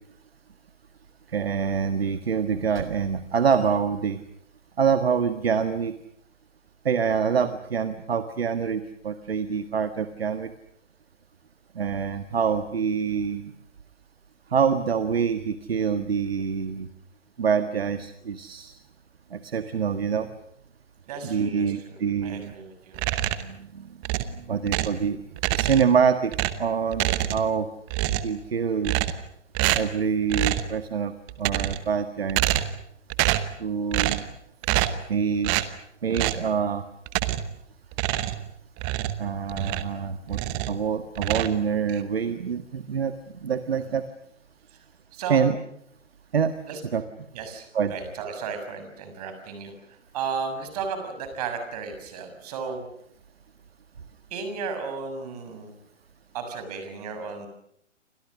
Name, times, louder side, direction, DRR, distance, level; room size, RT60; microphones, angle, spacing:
voice 1, 1.3-4.2 4.8-5.9 6.8-10.5 11.7-13.5 14.5-16.9 17.4-18.8 19.3-20.3 21.2-22.5 23.4-23.9 24.2-25.2 25.5-26.3 26.6-27.7 28.2-29.0 29.7-32.4 33.6-34.2 35.1-35.5 36.0-36.8 39.2-40.4 40.7-43.1 43.4-44.0 45.3-45.6 46.3-46.5 46.8-47.0 47.7-47.9, right 6 dB, 55° right, 10 dB, 1.7 m, -26 dB
voice 2, 21.1-23.0 45.1-45.4 46.7-46.8 47.3-49.7 50.1-52.9 54.3-55.7 56.3-57.5, right 5 dB, 30° right, 7 dB, 6.5 m, -34 dB
sound 1, 22.9-23.6 24.0-25.0 25.4-26.0 26.3-27.6 27.9-28.4 28.8-29.3 29.6-30.0 30.3-30.7 31.3-31.9 32.3-32.8 33.1-33.6 33.9-34.3 34.6-35.1 35.4-35.7 36.1-36.5 37.1-37.6 37.9-40.0 40.3-40.8 41.2-42.0, right 15 dB, 15° right, 0.9 m, -26 dB
29.5 x 25.5 x 6.4 m, 0.71 s
figure-of-eight pair, 130°, 36 cm